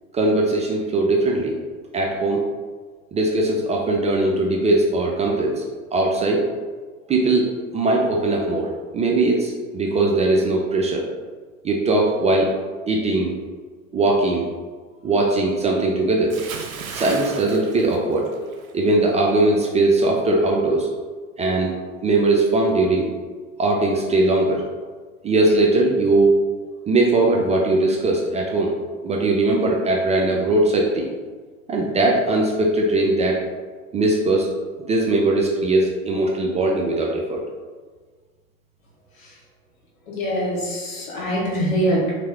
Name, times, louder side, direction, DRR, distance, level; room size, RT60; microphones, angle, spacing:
voice 1, 0.1-1.6 1.9-2.4 3.1-5.6 5.9-6.4 7.1-11.0 11.6-12.5 12.9-13.3 13.9-14.5 15.0-16.3 16.9-18.3 18.7-20.9 21.4-21.7 22.0-23.1 23.6-24.6 25.2-26.4 26.9-28.7 29.0-31.1 31.7-33.4 33.9-34.5 34.8-37.4, right 2 dB, 20° right, -1 dB, 0.4 m, -20 dB
Bathtub (filling or washing) / Splash splatter, 16.3-18.7 19.0-19.3, right 5 dB, 85° right, 0.5 m, -35 dB
voice 2, 40.1-42.1, equal, 80° left, -4 dB, 1.5 m, -23 dB
3.2 x 3.2 x 3.4 m, 1.5 s
hypercardioid pair, 80°, 41 cm